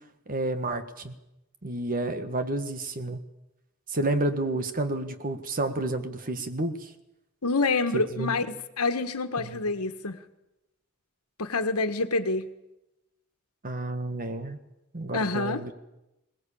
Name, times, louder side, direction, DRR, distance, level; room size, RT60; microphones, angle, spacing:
voice 1, 0.3-1.1 1.6-3.2 3.9-6.9 7.9-8.4 9.4-9.6 13.6-14.6 14.9-15.7, right 2 dB, 40° right, 9 dB, 1.6 m, -30 dB
voice 2, 7.4-10.2 11.4-12.5 15.1-15.6, left 3 dB, 75° left, 9 dB, 1.6 m, -27 dB
21.5 x 19.0 x 8.6 m, 0.92 s
head